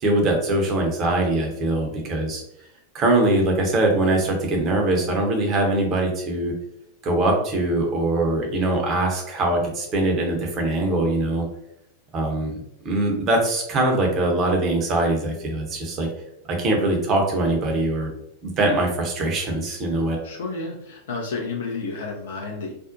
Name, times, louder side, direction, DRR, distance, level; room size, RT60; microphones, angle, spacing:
voice 1, 0.0-2.4 2.9-6.5 7.0-11.4 12.1-12.6 12.8-16.1 16.5-18.1 18.4-20.2, right 2 dB, 30° right, 1 dB, 0.7 m, -22 dB
voice 2, 20.2-22.7, left 3 dB, 60° left, 0 dB, 0.4 m, -31 dB
2.5 x 2.1 x 2.5 m, 0.81 s
figure-of-eight pair, 90°, 0 cm